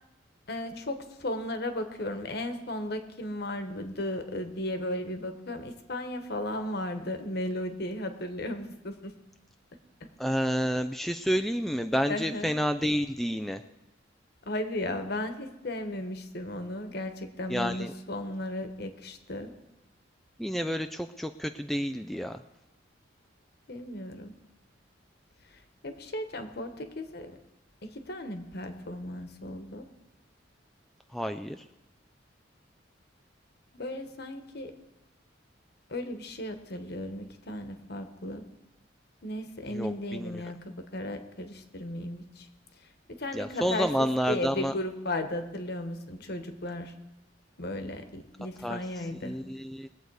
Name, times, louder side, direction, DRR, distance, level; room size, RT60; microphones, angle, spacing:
voice 1, 0.5-9.1 10.0-10.1 12.1-12.5 14.4-19.5 23.7-24.3 25.5-27.4 27.8-29.9 33.7-34.7 35.9-38.4 39.2-42.5 43.1-46.9 47.6-49.4, left 1 dB, 55° left, 7 dB, 1.3 m, -35 dB
voice 2, 10.2-13.6 17.5-17.9 20.4-22.4 31.1-31.6 39.7-40.4 43.3-44.7 48.6-48.8 49.2-49.9, equal, ahead, 7 dB, 0.3 m, -29 dB
21.5 x 7.9 x 4.8 m, 0.94 s
head